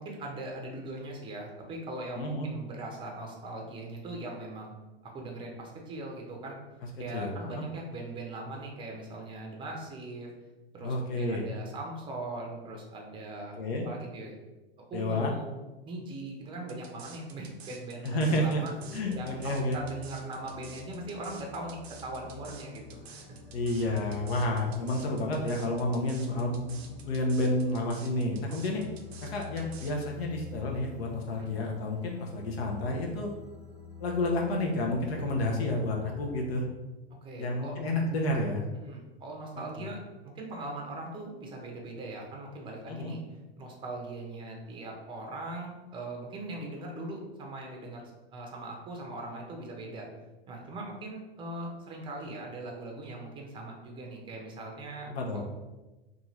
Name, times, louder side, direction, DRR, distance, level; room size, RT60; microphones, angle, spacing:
voice 1, 0.0-4.7 5.0-6.6 7.0-10.3 10.7-13.6 13.8-14.4 14.9-15.5 15.9-18.7 19.1-23.4 31.4-31.6 37.2-37.8 38.8-40.0 40.2-43.2 43.6-48.0 48.3-50.1 50.5-55.4, right 2 dB, 15° right, 0 dB, 0.5 m, -40 dB
voice 2, 2.2-2.5 7.1-7.6 10.8-11.4 13.6-13.9 14.9-15.3 18.0-18.6 18.9-19.8 23.5-28.8 29.2-33.3 34.0-36.7 37.4-38.6 39.8-39.9 42.9-43.1 55.1-55.4, left 1 dB, 75° left, 0 dB, 0.6 m, -30 dB
sound 1, 16.7-30.1, right 6 dB, 85° right, 0.5 m, -50 dB
sound 2, 18.7-36.5, left 6 dB, 10° left, 0.9 m, -48 dB
2.6 x 2.4 x 3.0 m, 1.1 s
hypercardioid pair, 110°, 31 cm